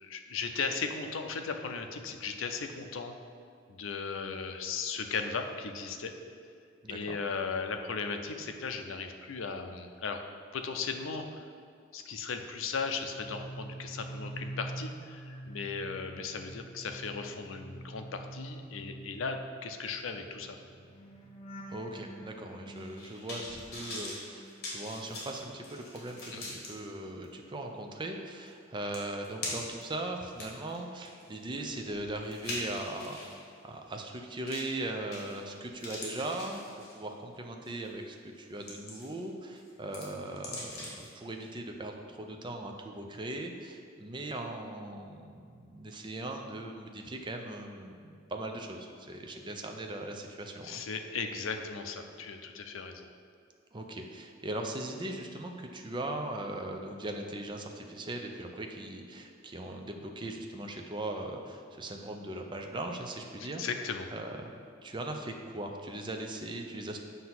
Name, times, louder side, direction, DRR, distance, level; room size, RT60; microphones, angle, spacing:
voice 1, 0.0-3.2 3.7-6.1 6.9-10.2 10.5-11.4 11.9-20.6 26.3-26.6 50.6-53.1 63.4-64.1, left 5 dB, 80° left, 6 dB, 0.5 m, -37 dB
voice 2, 6.8-7.2 21.7-36.6 36.9-50.8 53.7-63.6 64.1-64.6 64.8-67.0, right 1 dB, 25° right, 3 dB, 0.5 m, -39 dB
sound 1, 12.9-25.2 25.5-27.6 27.9-28.3, right 1 dB, 30° left, 0.7 m, -47 dB
sound 2, 22.8-26.7 27.2-27.3 28.5-28.6 28.9-29.8 30.3-33.4 34.5-34.8 35.1-35.5 35.8-37.1 37.6-37.9 38.3-39.2 39.6-41.1 41.4-41.5, left 2 dB, 55° left, 1.6 m, -42 dB
7.5 x 2.8 x 5.8 m, 2.3 s
head